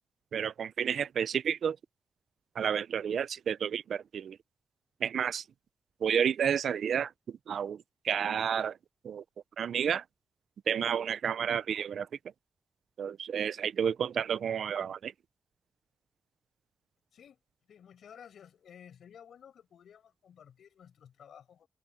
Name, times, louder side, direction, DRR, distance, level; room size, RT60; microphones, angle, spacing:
voice 1, 0.3-1.8 2.6-4.4 5.0-5.4 6.0-8.8 9.0-9.2 9.6-10.0 10.7-12.1 13.0-15.1, right 8 dB, 75° right, 0.5 m, -31 dB
voice 2, 17.7-21.7, left 8 dB, 85° left, 6.8 m, -54 dB
wide cardioid pair, 140°, 0 cm